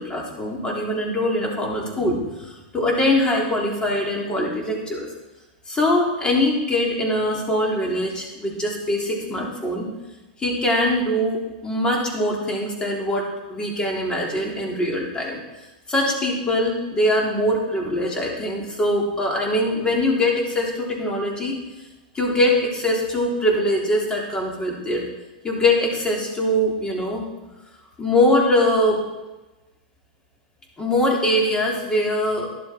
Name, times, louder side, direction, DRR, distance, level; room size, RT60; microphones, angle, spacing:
voice 1, 0.0-5.1 5.7-9.9 10.4-15.4 15.9-21.6 22.1-25.0 25.4-27.2 28.0-29.1 30.8-32.5, left 1 dB, 15° left, -1 dB, 3.4 m, -22 dB
12.5 x 11.0 x 4.5 m, 1.1 s
hypercardioid pair, 120°, 5 cm